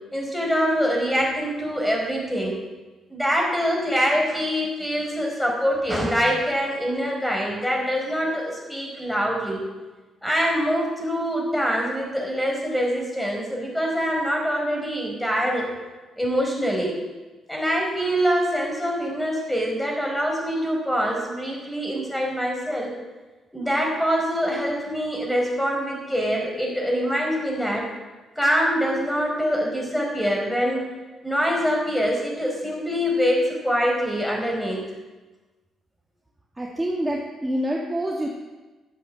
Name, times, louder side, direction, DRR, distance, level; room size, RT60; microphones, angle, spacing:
voice 1, 0.1-2.6 3.1-9.7 10.2-15.7 16.2-17.0 17.5-22.9 23.5-27.9 28.4-30.8 31.2-34.9, equal, 5° left, -1 dB, 4.9 m, -24 dB
voice 2, 36.6-38.3, equal, 15° right, -2 dB, 1.9 m, -26 dB
12.5 x 7.7 x 7.6 m, 1.2 s
cardioid pair, 80°, 0 cm